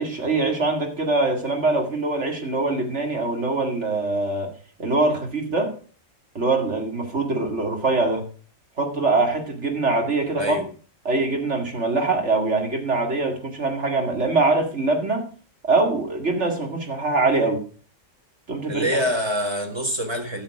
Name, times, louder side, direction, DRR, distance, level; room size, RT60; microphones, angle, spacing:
voice 1, 0.0-4.5 4.8-5.7 6.3-8.2 8.8-10.6 11.1-15.2 15.7-17.6 18.5-18.9, right 3 dB, 60° right, 2 dB, 2.5 m, -23 dB
voice 2, 10.4-10.7 18.7-20.4, equal, 20° right, 3 dB, 1.8 m, -25 dB
13.0 x 7.1 x 4.8 m, 0.40 s
omnidirectional pair, 1.4 m